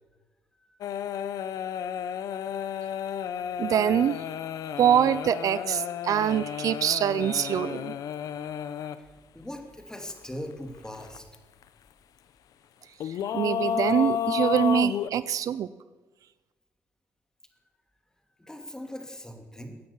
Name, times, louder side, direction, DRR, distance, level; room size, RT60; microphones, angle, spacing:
sound 1, 0.8-9.0 10.1-10.2 10.9-11.4 11.6-11.7 13.0-15.1, left 9 dB, 70° left, 0.7 m, -32 dB
voice 1, 3.6-4.2 4.8-7.9 13.3-15.7, right 9 dB, 65° right, 16 dB, 0.5 m, -24 dB
voice 2, 9.3-11.2 18.4-19.8, left 1 dB, 10° left, 4 dB, 2.7 m, -40 dB
16.5 x 9.6 x 7.2 m, 1.2 s
supercardioid pair, 70°, 6 cm